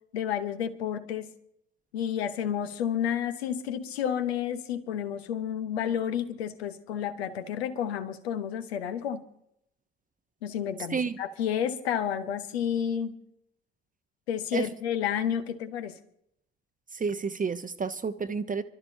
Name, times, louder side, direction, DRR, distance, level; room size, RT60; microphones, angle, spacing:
voice 1, 0.1-1.3 1.9-9.2 10.4-13.2 14.3-16.0, left 9 dB, 75° left, 1.0 m, -31 dB
voice 2, 16.9-18.6, right 5 dB, 25° right, 0.9 m, -30 dB
26.0 x 13.0 x 2.8 m
figure-of-eight pair, 45°, 31 cm